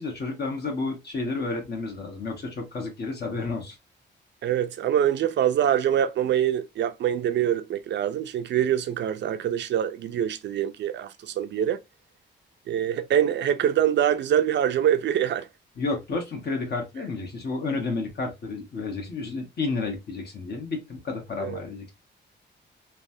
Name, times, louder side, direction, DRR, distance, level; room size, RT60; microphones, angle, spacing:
voice 1, 0.0-3.8 15.8-21.9, left 3 dB, 55° left, 1.2 m, -31 dB
voice 2, 4.4-11.8 12.7-15.5 21.4-21.6, right 10 dB, 70° right, 0.4 m, -24 dB
3.2 x 2.2 x 2.6 m
cardioid pair, 105°, 19 cm